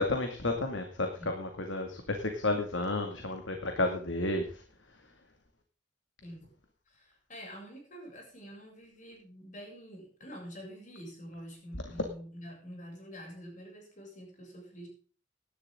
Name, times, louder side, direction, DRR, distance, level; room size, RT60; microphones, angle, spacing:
voice 1, 0.0-4.5, left 2 dB, 90° left, 4 dB, 2.3 m, -31 dB
voice 2, 6.9-14.9, equal, 40° left, 0 dB, 7.3 m, -47 dB
17.5 x 12.0 x 3.8 m, 0.41 s
head